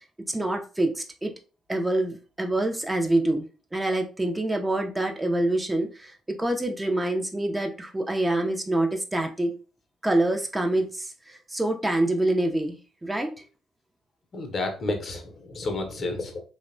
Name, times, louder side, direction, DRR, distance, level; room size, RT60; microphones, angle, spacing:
voice 1, 0.3-1.3 1.7-3.5 3.7-9.5 10.0-13.4, right 1 dB, 15° right, 4 dB, 0.5 m, -26 dB
voice 2, 14.3-16.4, left 2 dB, 45° left, 4 dB, 0.7 m, -31 dB
2.8 x 2.1 x 2.5 m, 0.36 s
hypercardioid pair, 50°, 0 cm